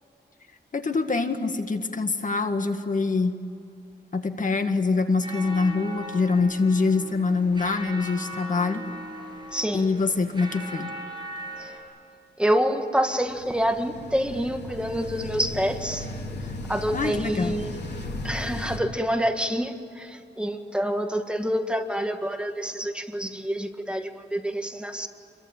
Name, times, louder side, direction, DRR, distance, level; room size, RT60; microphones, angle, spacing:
voice 1, 0.7-3.4 4.1-8.8 9.7-10.9 16.9-17.6, left 4 dB, 45° left, 6 dB, 1.8 m, -24 dB
sound 1, 5.2-11.8, right 1 dB, 25° right, 7.4 m, -39 dB
voice 2, 12.4-16.1 16.7-17.6 18.2-25.1, equal, 5° right, 5 dB, 1.8 m, -27 dB
sound 2, 13.3-18.8, left 2 dB, 70° left, 3.5 m, -35 dB
28.5 x 23.0 x 9.0 m, 2.5 s
wide cardioid pair, 125°, 18 cm